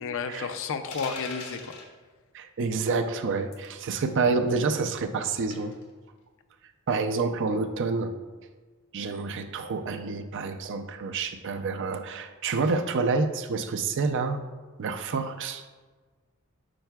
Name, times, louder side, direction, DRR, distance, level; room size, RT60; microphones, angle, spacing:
voice 1, 0.0-1.8, left 5 dB, 65° left, 8 dB, 0.5 m, -32 dB
sound 1, 0.9-1.9 3.5-3.8 5.5-5.8, left 4 dB, 80° left, 1.1 m, -40 dB
voice 2, 2.3-5.8 6.9-8.1 8.9-14.4 14.8-15.6, right 4 dB, 55° right, 8 dB, 0.4 m, -28 dB
8.8 x 5.6 x 2.3 m, 1.4 s
head